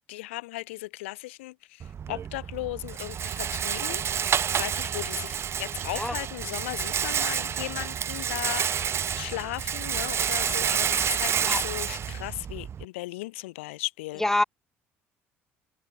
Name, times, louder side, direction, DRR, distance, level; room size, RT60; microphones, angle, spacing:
voice 1, 0.1-14.2, left 20 dB, 75° left, 0.4 m, -36 dB
Rattle, 1.8-12.8, right 8 dB, 40° right, 0.6 m, -29 dB
sound 1, 5.2-6.3 6.9-7.0 7.6-10.0, right 14 dB, 80° right, 4.1 m, -53 dB
voice 2, 5.9-6.1 11.4-11.6 14.2-14.4, left 1 dB, 5° left, 0.3 m, -25 dB
hypercardioid pair, 55°, 7 cm